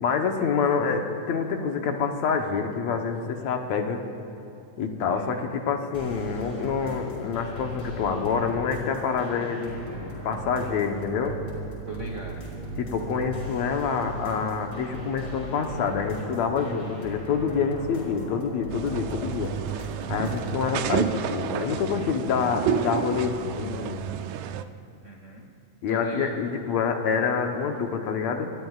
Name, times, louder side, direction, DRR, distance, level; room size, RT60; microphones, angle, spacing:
voice 1, 0.0-4.0 4.8-11.4 12.8-19.5 20.1-24.1 25.8-28.5, left 6 dB, 70° left, 4 dB, 2.2 m, -27 dB
voice 2, 5.1-5.4 11.8-12.5 25.0-25.5 25.9-26.4, right 2 dB, 70° right, 0 dB, 0.7 m, -39 dB
sound 1, 5.9-20.7, right 2 dB, 35° left, 4.6 m, -37 dB
sound 2, 18.7-24.6, right 9 dB, 85° right, 2.1 m, -30 dB
27.0 x 20.0 x 2.4 m, 2.7 s
omnidirectional pair, 3.4 m